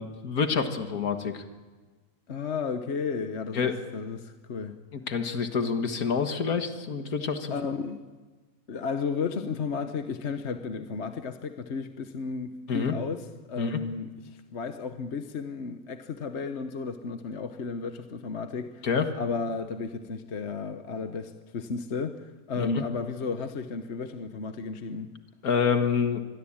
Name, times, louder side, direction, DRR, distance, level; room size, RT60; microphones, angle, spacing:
voice 1, 0.0-1.4 3.5-3.7 4.9-7.5 12.7-12.9 13.6-13.8 18.8-19.1 22.6-22.8 25.4-26.2, left 6 dB, 90° left, 2.1 m, -27 dB
voice 2, 2.3-4.8 7.5-8.0 8.7-18.9 19.1-25.1, left 5 dB, 55° left, 1.3 m, -33 dB
26.0 x 22.0 x 8.8 m
omnidirectional pair, 1.5 m